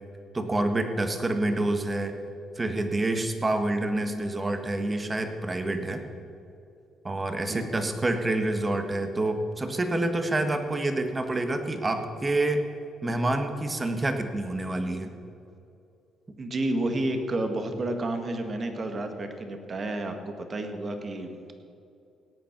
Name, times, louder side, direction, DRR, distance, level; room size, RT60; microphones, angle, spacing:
voice 1, 0.3-2.1 2.6-6.0 7.0-12.6 13.0-15.1, right 2 dB, 25° right, 6 dB, 1.5 m, -27 dB
voice 2, 16.4-21.5, right 2 dB, 40° right, 5 dB, 1.8 m, -30 dB
17.5 x 8.8 x 6.0 m, 2.6 s
cardioid pair, 90°, 0 cm